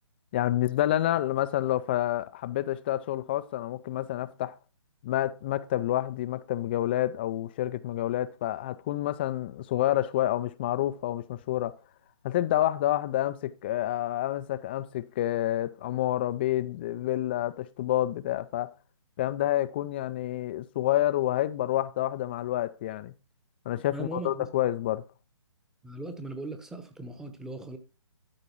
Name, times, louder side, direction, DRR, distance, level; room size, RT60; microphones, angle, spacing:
voice 1, 0.3-4.6 5.0-11.8 12.2-18.7 19.2-23.1 23.7-25.0, left 13 dB, 20° left, 0.4 m, -28 dB
voice 2, 23.9-24.5 25.8-27.8, right 2 dB, 5° right, 0.9 m, -39 dB
13.0 x 4.7 x 4.5 m
figure-of-eight pair, 145°, 15 cm